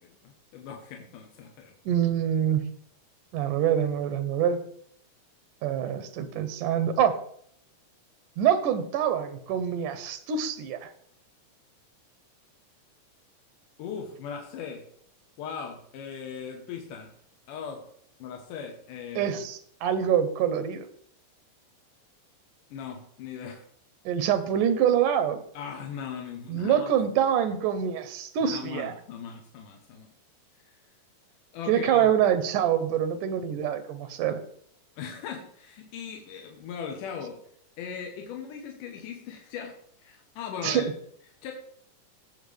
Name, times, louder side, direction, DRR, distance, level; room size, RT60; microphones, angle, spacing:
voice 1, 0.0-1.7 13.8-14.8 15.4-17.1 17.5-17.9 18.2-19.4 22.7-23.6 25.5-26.9 28.4-30.1 31.5-32.1 35.0-37.4 37.8-40.9 41.4-41.5, left 7 dB, 85° left, 2 dB, 2.7 m, -39 dB
voice 2, 1.9-2.7 3.3-4.6 5.6-7.2 8.4-10.9 19.2-20.9 24.1-25.4 26.5-28.9 31.7-34.4 40.6-40.9, right 9 dB, 85° right, 11 dB, 2.4 m, -25 dB
18.5 x 7.4 x 3.3 m, 0.65 s
omnidirectional pair, 3.6 m